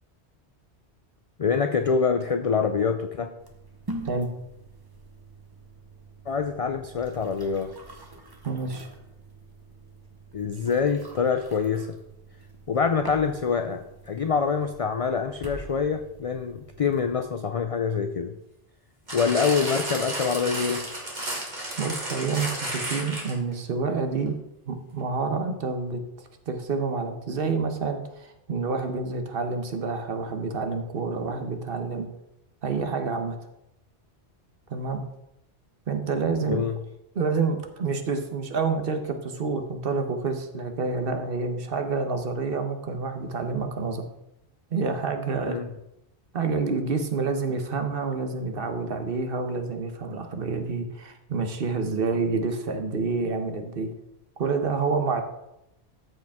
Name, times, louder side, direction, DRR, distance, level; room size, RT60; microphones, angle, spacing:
voice 1, 1.4-3.3 6.3-8.0 10.3-12.0 12.7-18.3 19.1-20.9 36.4-36.8 45.4-45.7, left 5 dB, 50° left, 6 dB, 0.4 m, -25 dB
sound 1, 3.4-17.2, right 2 dB, 20° right, 1.0 m, -45 dB
voice 2, 8.4-8.9 21.8-24.3 24.7-26.0 26.5-32.1 32.6-33.4 34.7-35.0 35.9-36.6 37.1-44.1 44.7-45.6 46.3-53.9 54.4-55.2, right 4 dB, 60° right, 6 dB, 1.2 m, -28 dB
sound 2, 19.1-23.5 24.3-24.4, right 1 dB, 45° right, 2.1 m, -32 dB
13.5 x 5.1 x 3.5 m, 0.86 s
omnidirectional pair, 1.1 m